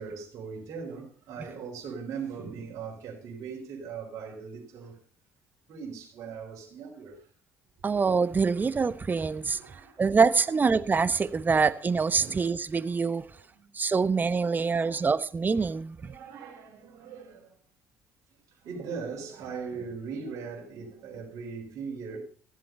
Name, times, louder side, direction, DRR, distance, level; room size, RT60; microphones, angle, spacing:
voice 1, 0.0-5.0 5.7-7.3 9.5-10.7 12.2-12.7 13.3-13.7 14.3-15.1 16.0-17.6 18.5-22.2, right 5 dB, 60° right, 3.9 m, -40 dB
voice 2, 7.8-9.6 10.0-13.2 13.7-16.0, right 5 dB, 30° right, 0.9 m, -25 dB
14.5 x 7.6 x 5.4 m
hypercardioid pair, 60°, 6 cm